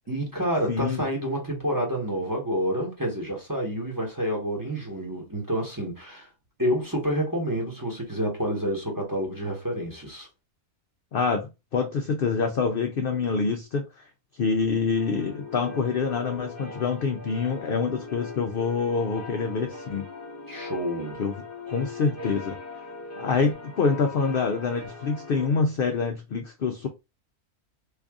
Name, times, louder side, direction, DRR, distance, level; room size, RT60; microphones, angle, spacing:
voice 1, 0.1-6.3 6.6-10.3 20.5-21.2, equal, 15° right, 1.0 m, -28 dB
voice 2, 0.7-1.0 11.1-14.0 14.4-20.0 21.2-21.3 21.7-22.6 23.2-26.9, left 5 dB, 70° left, 0.5 m, -26 dB
sound 1, 14.9-25.5, left 3 dB, 20° left, 0.4 m, -40 dB
3.2 x 2.5 x 3.5 m
omnidirectional pair, 1.5 m